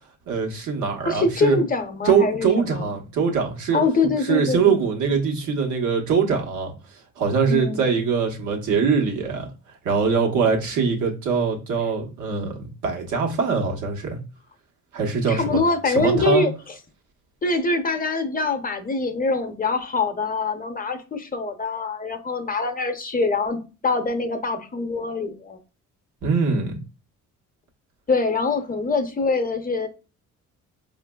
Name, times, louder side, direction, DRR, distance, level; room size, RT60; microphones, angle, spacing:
voice 1, 0.3-1.6 2.0-3.8 4.3-6.7 7.2-9.5 9.8-14.2 14.9-16.4 26.2-26.8, right 5 dB, 80° right, 1 dB, 1.1 m, -22 dB
voice 2, 1.0-3.0 3.7-4.8 7.5-7.8 15.3-16.5 17.4-23.6 23.8-25.6 28.1-29.9, left 3 dB, 30° left, 7 dB, 0.7 m, -24 dB
5.0 x 2.5 x 2.2 m, 0.33 s
cardioid pair, 90°, 30 cm